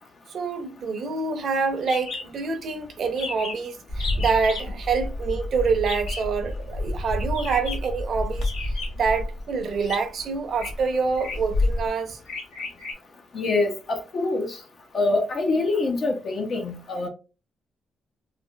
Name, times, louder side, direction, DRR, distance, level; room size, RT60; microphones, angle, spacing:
voice 1, 0.3-8.4 9.0-12.2, right 5 dB, 55° right, 0.6 m, -26 dB
sound 1, 1.9-2.3 2.5-2.6 2.9-3.0 3.2-3.6 4.0-4.7 5.9-6.3 7.3-7.9 8.4-9.1 9.8-10.0 10.5-10.7 11.2-11.5 12.3-12.9, left 3 dB, 90° left, 1.3 m, -35 dB
Bird, 3.9-11.9, left 1 dB, 70° left, 1.0 m, -30 dB
voice 2, 13.3-14.6 14.9-17.1, left 3 dB, 45° left, 0.6 m, -25 dB
3.3 x 2.5 x 2.2 m
cardioid pair, 130°, 0 cm